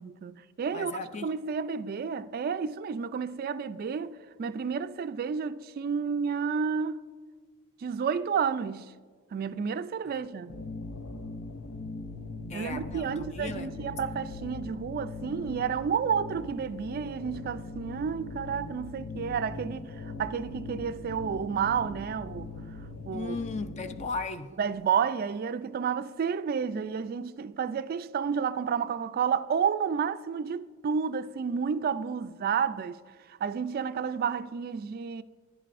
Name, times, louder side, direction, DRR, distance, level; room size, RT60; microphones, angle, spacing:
voice 1, 0.0-0.9 1.2-7.0 7.8-8.9 9.3-10.5 12.5-22.5 23.1-23.4 24.6-33.0 33.3-35.2, right 6 dB, 45° right, 0.3 m, -31 dB
voice 2, 0.7-1.3 10.2-10.3 12.5-13.7 23.1-24.5, left 4 dB, 35° left, 0.5 m, -36 dB
sound 1, 10.5-24.1, left 3 dB, 80° left, 0.7 m, -41 dB
15.0 x 11.0 x 2.5 m
head